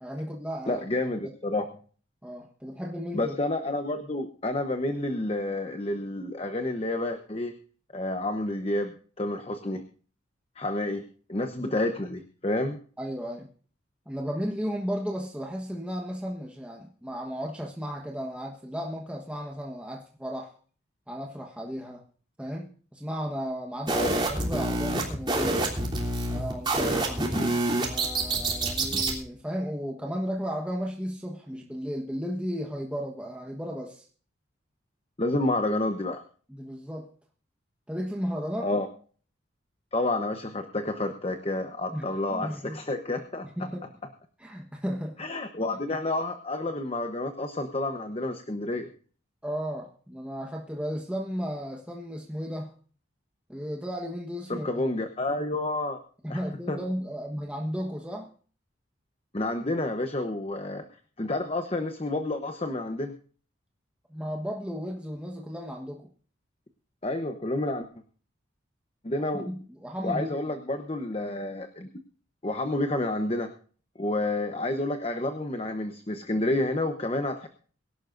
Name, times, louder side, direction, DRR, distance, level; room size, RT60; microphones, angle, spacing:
voice 1, 0.0-0.8 2.2-3.3 11.6-11.8 13.0-13.5 14.1-20.6 21.1-22.0 22.4-25.7 26.3-27.3 27.8-34.1 36.5-37.1 37.9-38.7 41.9-42.8 43.6-43.8 44.4-45.2 45.7-45.8 49.4-52.7 53.5-54.8 56.2-58.3 64.1-66.1 69.1-70.4, equal, 5° right, 0 dB, 1.2 m, -34 dB
voice 2, 0.7-1.7 3.1-7.5 7.9-9.8 10.6-12.8 23.9-24.1 27.3-27.5 28.9-29.0 35.2-36.2 38.6-38.9 39.9-43.7 45.2-48.9 54.5-56.0 56.3-56.4 56.7-56.8 59.3-60.8 61.2-63.1 67.0-67.9 69.0-69.5 70.0-71.9 72.4-73.5 74.0-77.5, left 2 dB, 30° left, 7 dB, 0.9 m, -29 dB
sound 1, 23.9-29.2, right 2 dB, 25° right, 3.3 m, -27 dB
23.5 x 11.5 x 2.6 m, 0.43 s
head